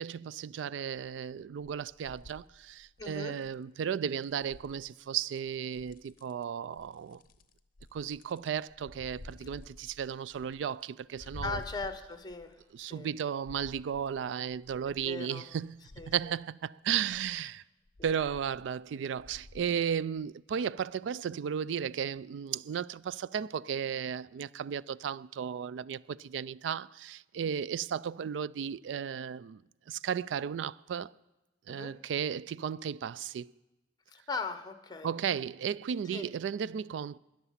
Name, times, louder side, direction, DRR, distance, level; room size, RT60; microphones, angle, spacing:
voice 1, 0.0-7.2 7.9-11.6 12.7-15.8 16.1-17.6 18.0-29.6 29.9-31.1 31.7-33.5 35.0-37.2, right 8 dB, 80° right, 0.3 m, -34 dB
sound 1, 1.0-1.3 1.6-3.6 4.3-5.0 5.4-6.4 6.8-13.1 13.5-15.2 15.6-16.3 16.9-17.4 17.9-18.8 19.2-19.7 20.2-20.3, left 2 dB, 50° left, 0.7 m, -51 dB
voice 2, 3.0-3.4 9.4-9.5 11.2-13.1 14.9-15.5 16.0-16.3 17.3-17.5 18.0-18.1 31.7-31.9 34.1-35.1 36.1-36.3, left 3 dB, 25° left, 1.0 m, -40 dB
13.5 x 10.0 x 5.7 m
head